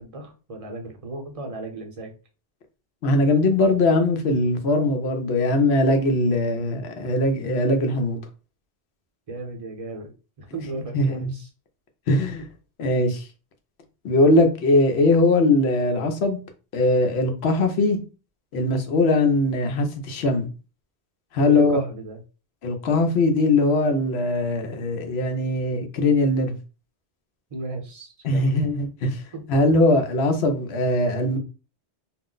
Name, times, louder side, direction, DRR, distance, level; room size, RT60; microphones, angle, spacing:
voice 1, 0.0-2.1 9.3-10.1 10.4-11.5 21.5-22.2 27.5-28.6 29.3-29.4, right 2 dB, 40° right, 0.7 m, -35 dB
voice 2, 3.0-8.2 10.9-11.3 12.1-12.5 12.8-13.2 14.0-16.4 16.7-18.0 18.5-20.5 21.3-21.8 22.6-26.6 28.2-29.2 29.5-31.4, left 2 dB, 75° left, 0.9 m, -21 dB
2.4 x 2.1 x 3.7 m
omnidirectional pair, 1.1 m